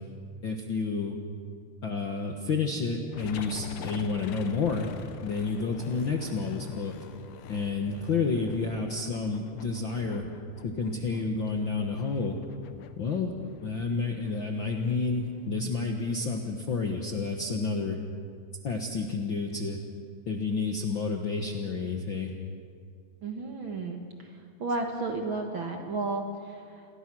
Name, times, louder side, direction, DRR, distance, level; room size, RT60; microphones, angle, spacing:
voice 1, 0.4-1.2 1.8-4.9 5.2-6.9 7.5-10.2 10.6-12.4 13.0-13.3 13.6-18.0 18.6-19.8 20.3-22.3, left 4 dB, 50° left, 2 dB, 1.5 m, -30 dB
sound 1, 3.1-15.5, left 8 dB, 75° left, 2.6 m, -46 dB
voice 2, 23.2-24.3 24.6-26.9, right 3 dB, 45° right, 3 dB, 2.0 m, -33 dB
29.5 x 22.0 x 6.2 m, 2.3 s
omnidirectional pair, 3.9 m